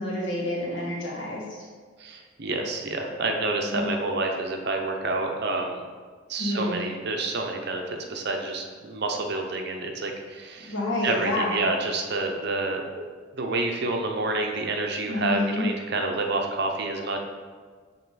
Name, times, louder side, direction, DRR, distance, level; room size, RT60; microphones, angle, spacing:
voice 1, 0.0-1.4 3.7-3.9 6.4-6.8 10.7-11.6 15.1-15.7, left 1 dB, 70° left, -5 dB, 1.8 m, -28 dB
voice 2, 2.0-5.8 6.3-10.7 11.0-12.8 13.3-17.2, right 2 dB, 55° right, 3 dB, 0.7 m, -28 dB
6.7 x 3.7 x 4.1 m, 1.5 s
head